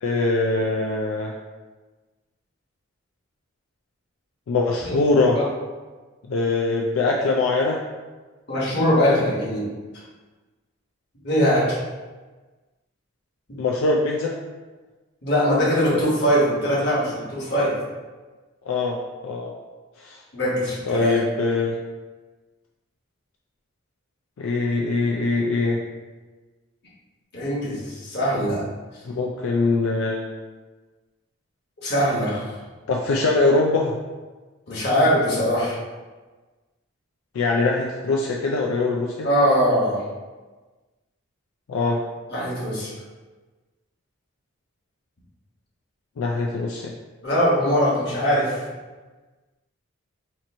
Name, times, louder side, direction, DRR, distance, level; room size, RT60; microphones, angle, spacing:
voice 1, 0.0-1.3 4.5-5.4 6.3-7.8 13.6-14.3 18.7-19.0 19.2-19.5 20.0-20.2 20.9-21.8 24.4-25.8 29.0-30.4 32.9-33.9 37.3-39.3 41.7-42.0 46.2-46.9, left 3 dB, 80° left, -1 dB, 0.4 m, -22 dB
voice 2, 8.5-9.7 11.2-11.8 13.5-13.6 15.2-17.7 20.3-21.2 27.3-28.6 31.8-32.5 34.7-35.8 39.2-40.1 42.3-42.9 47.2-48.7, equal, 50° left, -6 dB, 1.2 m, -21 dB
2.9 x 2.5 x 4.2 m, 1.3 s
head